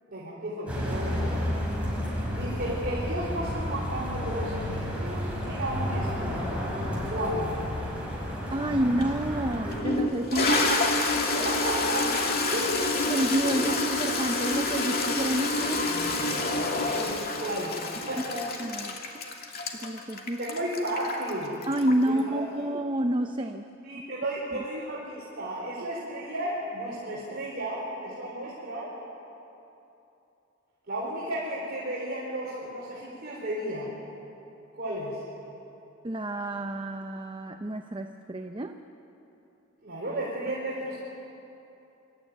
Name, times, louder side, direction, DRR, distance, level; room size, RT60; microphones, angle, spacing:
voice 1, 0.1-1.5 1.9-6.7 7.1-7.5 10.3-10.8 11.2-12.1 12.5-13.0 13.4-13.5 16.9-18.5 20.4-21.6 22.0-22.4 23.8-28.9 30.9-33.9 34.7-35.2 39.8-41.0, right 1 dB, 45° right, -7 dB, 4.1 m, -33 dB
sound 1, 0.7-9.8, equal, 5° right, 5.5 m, -31 dB
voice 2, 8.5-10.5 13.1-15.9 18.2-18.3 18.6-19.2 19.7-20.4 21.7-23.6 24.5-24.6 36.0-38.8, right 1 dB, 25° right, 6 dB, 0.7 m, -29 dB
Toilet flush, 9.0-9.1 9.7-22.2, left 2 dB, 45° left, 2.3 m, -28 dB
26.0 x 13.5 x 9.2 m, 2.9 s
head